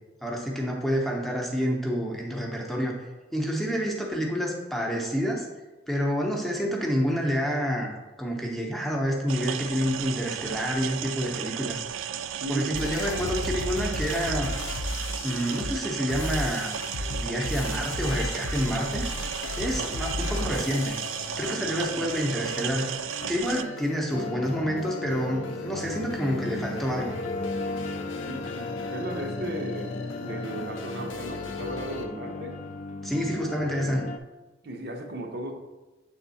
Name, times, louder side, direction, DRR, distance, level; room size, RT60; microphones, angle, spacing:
voice 1, 0.2-2.9 3.3-5.5 5.9-7.9 8.2-11.8 12.5-14.5 15.2-16.7 17.1-19.0 19.6-21.0 21.4-22.9 23.3-27.2 33.0-34.0, equal, ahead, -1 dB, 0.8 m, -28 dB
sound 1, 9.3-23.6, right 9 dB, 90° right, 0.3 m, -34 dB
voice 2, 12.4-12.8 19.6-19.9 28.2-32.6 33.2-33.4 34.6-35.5, right 1 dB, 55° right, 3 dB, 0.7 m, -36 dB
sound 2, 12.7-32.1, left 2 dB, 85° left, 0.6 m, -36 dB
sound 3, 24.1-34.2, left 3 dB, 35° left, 0.3 m, -36 dB
7.2 x 3.5 x 4.1 m, 1.1 s
head